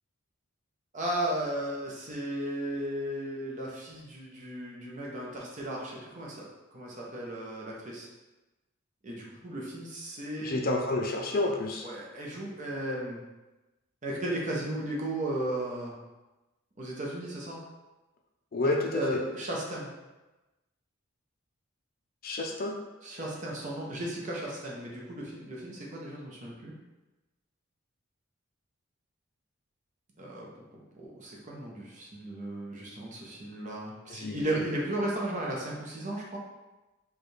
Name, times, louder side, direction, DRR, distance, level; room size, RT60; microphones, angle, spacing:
voice 1, 0.9-6.4 6.7-8.1 9.0-10.7 11.8-13.2 14.0-16.0 16.8-17.6 18.9-19.9 23.0-26.7 30.2-36.4, right 1 dB, 35° right, -3 dB, 0.8 m, -35 dB
voice 2, 10.4-11.9 18.5-19.2 22.2-22.8 34.1-34.4, left 2 dB, 45° left, 1 dB, 0.4 m, -29 dB
4.8 x 2.3 x 3.2 m, 1.1 s
head